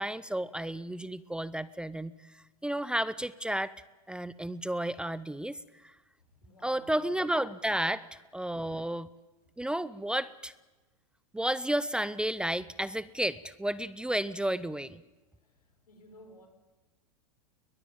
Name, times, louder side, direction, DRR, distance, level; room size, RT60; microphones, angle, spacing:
voice 1, 0.0-3.7 4.1-5.9 6.6-9.1 9.6-10.5 11.3-15.0, right 1 dB, 5° right, 18 dB, 0.7 m, -32 dB
voice 2, 6.3-7.3 15.4-16.5, equal, 90° left, 6 dB, 5.7 m, -56 dB
21.5 x 21.5 x 8.8 m, 1.2 s
hypercardioid pair, 100°, 19 cm